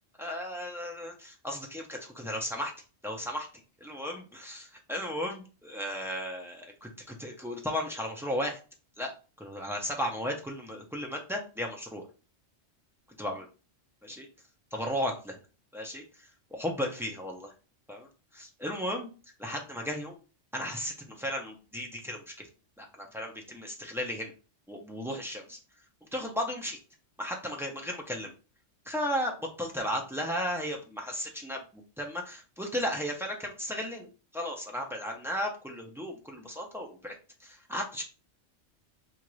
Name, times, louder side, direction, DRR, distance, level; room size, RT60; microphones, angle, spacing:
voice 1, 0.2-2.7 3.0-3.5 3.8-8.6 9.0-9.1 9.4-12.1 13.2-13.4 14.0-14.3 14.7-15.4 15.7-17.5 17.9-19.1 19.4-20.2 20.5-22.3 22.8-24.3 24.7-25.6 26.1-26.8 27.2-28.3 28.9-37.1 37.4-38.0, equal, 5° right, 0 dB, 0.4 m, -35 dB
4.3 x 2.5 x 3.1 m, 0.34 s
omnidirectional pair, 1.3 m